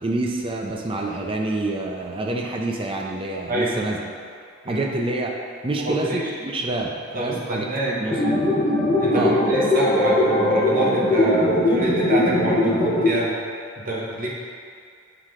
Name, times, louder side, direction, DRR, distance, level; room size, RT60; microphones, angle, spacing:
voice 1, 0.0-4.1 4.7-5.3 5.6-8.2 9.1-9.4, right 2 dB, 25° right, 1 dB, 0.5 m, -27 dB
voice 2, 5.7-6.3 7.1-8.3 9.0-13.3 13.8-14.3, right 1 dB, 40° right, -5 dB, 1.1 m, -26 dB
sound 1, 8.1-13.1, left 1 dB, 25° left, 0.9 m, -20 dB
5.8 x 3.8 x 4.8 m, 2.2 s
head